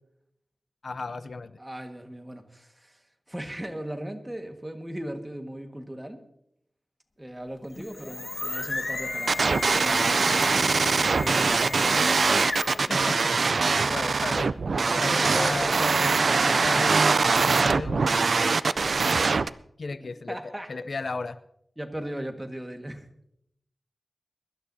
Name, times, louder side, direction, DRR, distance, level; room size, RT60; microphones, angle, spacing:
voice 1, 0.8-1.6 12.9-13.3 13.7-14.5 14.9-15.7 16.4-16.9 17.5-19.2 19.8-20.4 20.7-21.4, left 3 dB, 70° left, 13 dB, 0.5 m, -35 dB
voice 2, 1.6-3.0 3.3-6.2 7.2-12.0 14.7-16.9 20.0-20.7 21.8-23.1, right 1 dB, 15° right, 5 dB, 1.6 m, -37 dB
sound 1, 7.6-12.9, left 2 dB, 50° left, 1.7 m, -34 dB
sound 2, 9.3-19.5, right 4 dB, 75° right, 0.4 m, -23 dB
23.0 x 12.5 x 2.7 m, 0.74 s
wide cardioid pair, 75°, 0 cm